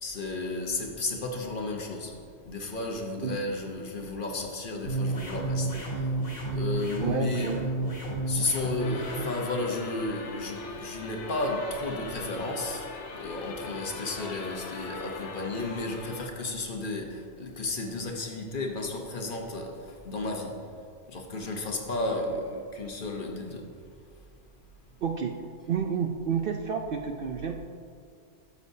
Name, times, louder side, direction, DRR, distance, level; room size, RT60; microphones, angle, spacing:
voice 1, 0.0-6.2 6.5-7.5 8.3-20.7 21.1-23.8, left 2 dB, 50° left, 1 dB, 1.0 m, -33 dB
sound 1, 4.8-9.2, right 2 dB, 90° left, 2.4 m, -31 dB
voice 2, 7.0-7.7 25.0-25.4 25.7-27.6, right 6 dB, 60° right, 3 dB, 0.6 m, -30 dB
sound 2, 8.8-16.3, left 3 dB, 70° left, 1.1 m, -40 dB
12.5 x 7.2 x 2.7 m, 2.3 s
omnidirectional pair, 1.2 m